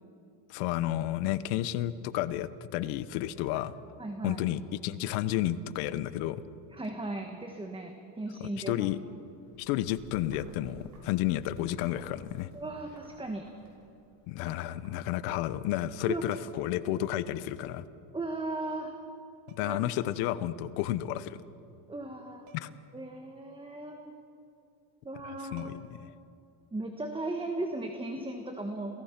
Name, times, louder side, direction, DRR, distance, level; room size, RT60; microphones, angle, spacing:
voice 1, 0.5-3.7 4.2-6.4 8.4-9.0 9.6-12.5 14.3-17.8 19.6-21.4 22.5-22.7 25.2-25.7, left 13 dB, 85° left, 15 dB, 1.1 m, -31 dB
voice 2, 4.0-4.4 6.7-8.8 12.5-13.5 16.1-16.2 18.1-18.9 19.6-19.8 21.9-24.1 25.0-25.7 26.7-29.0, right 2 dB, 10° right, 4 dB, 1.3 m, -37 dB
Bird, 9.2-14.8, left 2 dB, 35° left, 3.9 m, -58 dB
sound 1, 10.3-11.2 11.8-12.1 12.7-13.9 14.5-14.6 14.8-16.3, right 3 dB, 40° right, 6.8 m, -58 dB
sound 2, 16.3-16.9 18.2-18.3 19.5-19.9 22.5-22.9 23.2-23.3 25.1-25.2 25.6-26.1 28.1-28.3, right 5 dB, 70° right, 2.1 m, -54 dB
28.5 x 18.0 x 5.9 m, 2.7 s
cardioid pair, 135°, 50 cm